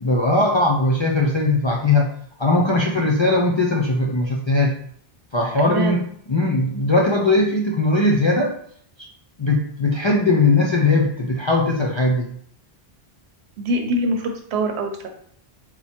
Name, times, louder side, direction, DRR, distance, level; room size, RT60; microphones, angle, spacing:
voice 1, 0.0-2.1 2.4-4.8 5.3-6.0 6.3-8.5 9.4-12.3, left 2 dB, 50° left, -1 dB, 0.3 m, -19 dB
voice 2, 5.6-6.0 13.6-15.1, right 1 dB, 90° right, 3 dB, 1.0 m, -24 dB
4.5 x 2.0 x 4.2 m, 0.63 s
omnidirectional pair, 1.1 m